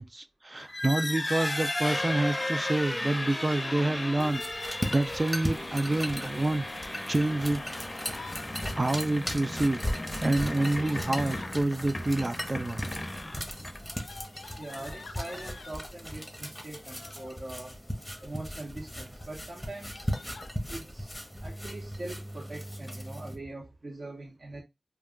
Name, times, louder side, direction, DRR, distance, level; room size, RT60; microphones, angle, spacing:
voice 1, 0.0-6.7 7.1-7.9 8.7-9.8 10.2-12.8, right 2 dB, 35° right, 0.3 m, -28 dB
sound 1, 0.6-14.0, left 1 dB, 30° left, 0.5 m, -35 dB
Yell, 3.2-4.0 5.3-6.2 7.4-8.5 9.8-11.6 12.4-12.9 13.2-15.8 16.7-17.3 17.9-18.4 18.8-18.9 19.2-19.3 19.6-20.5, left 4 dB, 90° left, 0.4 m, -49 dB
sound 2, 4.2-23.4, equal, 5° left, 0.8 m, -38 dB
voice 2, 14.6-17.8 18.2-20.1 20.7-24.6, right 2 dB, 55° right, 1.0 m, -42 dB
2.3 x 2.3 x 3.6 m
cardioid pair, 50°, 0 cm